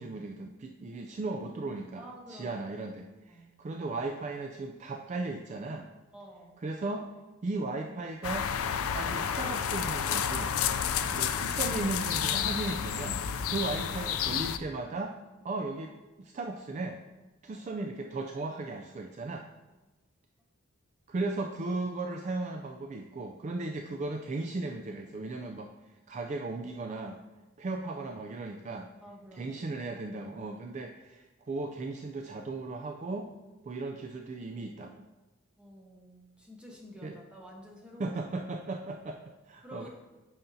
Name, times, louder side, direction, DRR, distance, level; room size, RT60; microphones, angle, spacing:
voice 1, 0.0-2.0 2.3-5.9 6.6-7.1 7.4-8.5 8.9-10.5 11.1-15.1 15.4-17.0 17.4-19.5 21.1-25.7 26.1-27.2 27.6-28.9 29.4-33.3 33.6-35.1 37.0-37.2 38.0-39.2 39.5-39.9, right 3 dB, 35° right, 4 dB, 0.3 m, -36 dB
voice 2, 2.0-2.7 3.3-3.6 6.1-6.6 17.4-17.7 29.0-29.6 35.6-38.2 39.6-39.9, equal, 5° right, -2 dB, 1.1 m, -50 dB
sound 1, 8.2-14.6, left 8 dB, 80° left, 0.4 m, -30 dB
9.2 x 5.8 x 2.7 m, 1.1 s
head